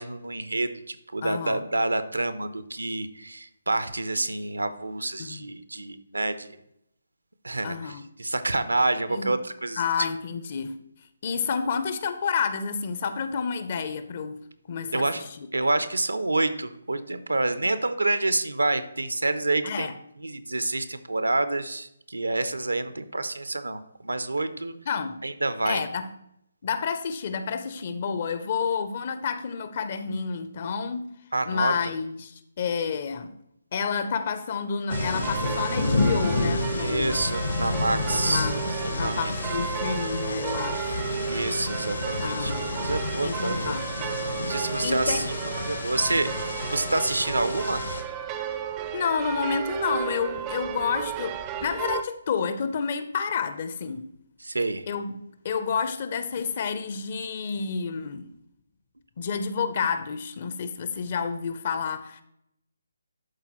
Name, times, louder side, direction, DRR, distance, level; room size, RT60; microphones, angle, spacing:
voice 1, 0.0-6.6 7.4-10.1 14.9-15.2 15.5-19.9 20.2-24.7 25.2-25.8 31.3-31.9 36.8-38.5 38.8-39.4 41.2-43.8 44.4-47.9 54.4-54.9, right 2 dB, 80° right, 0.6 m, -28 dB
voice 2, 1.2-1.6 5.2-5.5 7.6-8.1 9.1-9.4 9.8-10.7 11.2-14.4 14.7-15.5 19.6-19.9 24.9-25.2 25.6-26.1 26.6-31.1 31.5-33.3 33.7-37.2 38.3-38.6 38.9-41.1 42.2-42.7 43.2-43.9 44.8-45.3 48.5-48.7 48.9-54.1 54.9-58.3 59.2-62.2, left 6 dB, 40° left, 0.5 m, -30 dB
sound 1, 34.9-48.0, left 3 dB, 65° left, 0.9 m, -30 dB
sound 2, 34.9-52.0, right 9 dB, 20° right, 0.4 m, -34 dB
11.5 x 3.9 x 3.0 m
figure-of-eight pair, 145°, 0 cm